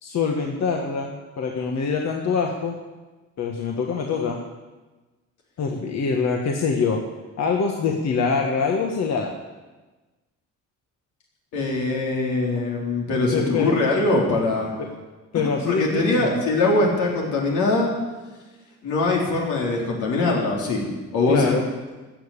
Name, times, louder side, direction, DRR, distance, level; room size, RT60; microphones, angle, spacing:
voice 1, 0.0-2.7 3.4-4.4 5.6-7.0 7.4-9.3 13.3-13.8 15.3-16.3 21.3-21.6, left 5 dB, 60° left, 2 dB, 1.5 m, -24 dB
voice 2, 11.5-14.7 15.7-17.9 18.8-21.6, left 2 dB, 85° left, -1 dB, 3.6 m, -22 dB
14.0 x 7.2 x 8.6 m, 1.2 s
cardioid pair, 90°, 30 cm